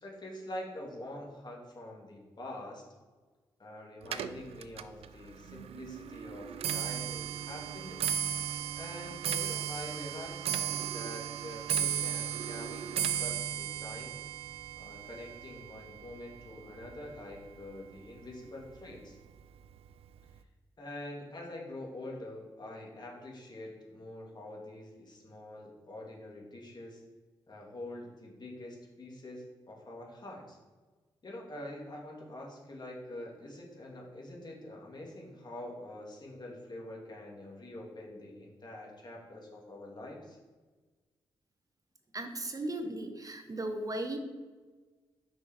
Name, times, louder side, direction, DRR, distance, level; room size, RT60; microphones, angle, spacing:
voice 1, 0.0-2.8 3.6-8.1 8.8-14.2 14.8-19.2 20.8-27.0 27.5-30.6 31.2-40.4, left 1 dB, 45° left, -1 dB, 1.9 m, -45 dB
Clock, 4.0-17.4 17.7-18.2 19.0-19.1 19.4-19.8 20.0-20.1, right 9 dB, 75° right, 0.4 m, -36 dB
voice 2, 42.1-44.2, right 1 dB, 35° right, 6 dB, 1.1 m, -36 dB
6.0 x 4.7 x 3.6 m, 1.3 s
supercardioid pair, 45°, 10 cm